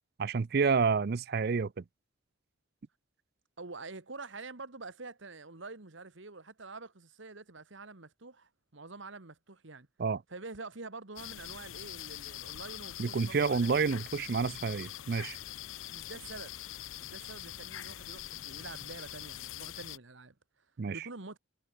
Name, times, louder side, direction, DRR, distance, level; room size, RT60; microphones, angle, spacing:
voice 1, 0.2-1.8 10.0-10.2 13.0-15.4 20.8-21.0, right 5 dB, 50° right, 0.4 m, -29 dB
voice 2, 3.6-9.9 10.3-14.0 15.9-16.6 17.0-20.3 20.9-21.4, right 3 dB, 65° right, 1.6 m, -47 dB
sound 1, 11.2-20.0, left 12 dB, 75° left, 0.6 m, -44 dB
head